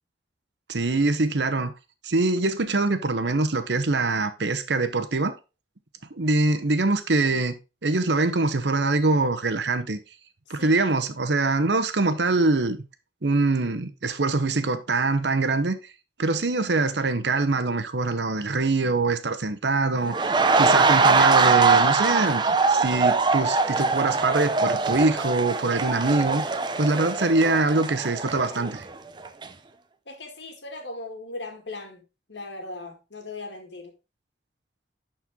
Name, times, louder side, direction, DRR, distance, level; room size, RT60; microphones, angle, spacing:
voice 1, 0.7-1.7 2.0-5.3 6.2-7.6 7.8-10.0 10.5-12.8 13.2-15.8 16.2-28.8, right 3 dB, 80° right, 0.9 m, -24 dB
voice 2, 10.5-10.9 30.1-33.9, left 2 dB, 85° left, 2.0 m, -39 dB
sound 1, 20.1-28.9 29.3-29.5, right 4 dB, 25° right, 0.5 m, -22 dB
11.0 x 4.4 x 3.6 m
head